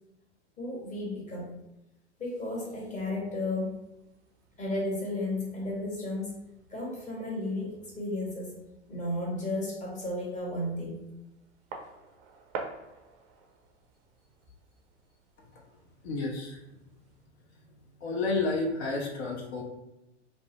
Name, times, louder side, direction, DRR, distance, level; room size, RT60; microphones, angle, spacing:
voice 1, 0.6-1.5 2.2-3.9 4.6-6.3 6.7-8.6 8.9-11.0, left 1 dB, 20° left, -3 dB, 1.0 m, -33 dB
sound 1, 3.2-17.3, right 4 dB, 35° right, 0.4 m, -50 dB
voice 2, 16.0-16.6 18.0-19.6, left 3 dB, 65° left, -1 dB, 0.7 m, -31 dB
2.5 x 2.1 x 2.9 m, 0.92 s
hypercardioid pair, 105°, 35 cm